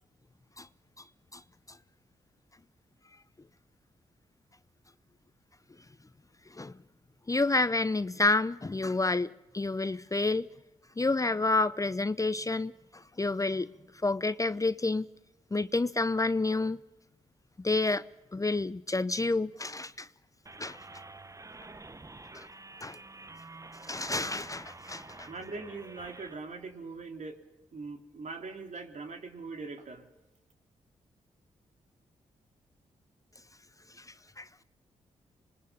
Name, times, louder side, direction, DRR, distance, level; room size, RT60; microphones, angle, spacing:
voice 1, 7.3-10.5 11.0-13.7 14.0-15.1 15.5-16.8 17.6-18.0 18.3-20.1 20.6-20.8 22.3-22.5 22.8-23.0 23.9-25.3 34.0-34.1 34.4-34.5, left 3 dB, 25° left, 0.7 m, -29 dB
sound 1, 20.5-26.3, right 2 dB, 20° right, 0.9 m, -48 dB
voice 2, 25.3-27.4 27.7-30.1, right 3 dB, 55° right, 3.0 m, -41 dB
26.5 x 20.5 x 5.5 m
supercardioid pair, 40°, 15 cm